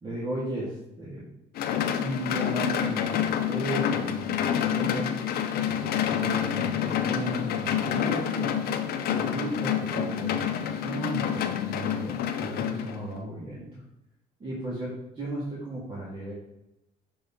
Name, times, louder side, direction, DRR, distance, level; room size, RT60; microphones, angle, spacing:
voice 1, 0.0-1.2 2.0-5.1 5.6-8.5 9.1-13.8 14.4-14.9 15.2-16.3, right 1 dB, 30° right, -7 dB, 1.9 m, -35 dB
sound 1, 1.6-13.2, left 9 dB, 65° left, 0.6 m, -28 dB
6.4 x 4.2 x 3.6 m, 0.90 s
cardioid pair, 110°, 17 cm